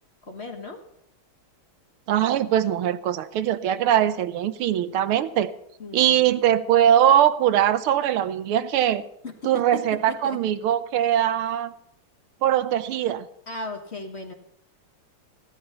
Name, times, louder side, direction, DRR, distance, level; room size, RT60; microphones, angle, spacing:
voice 1, 0.2-0.8 5.8-6.4 9.2-10.4 13.5-14.3, left 2 dB, 35° left, 4 dB, 1.5 m, -36 dB
voice 2, 2.1-5.5 5.9-9.0 9.4-11.7 12.4-13.3, right 10 dB, 85° right, 12 dB, 1.7 m, -21 dB
16.0 x 13.0 x 5.6 m, 0.72 s
omnidirectional pair, 2.3 m